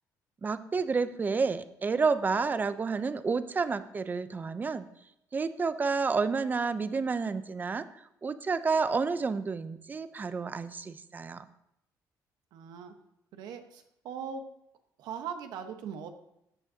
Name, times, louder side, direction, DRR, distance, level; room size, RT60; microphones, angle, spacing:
voice 1, 0.4-4.9 5.3-11.5, right 4 dB, 25° right, 13 dB, 0.6 m, -30 dB
voice 2, 12.5-12.9 13.3-14.4 15.0-16.1, right 7 dB, 80° right, 7 dB, 1.1 m, -40 dB
14.5 x 8.8 x 2.8 m, 0.80 s
cardioid pair, 110°, 7 cm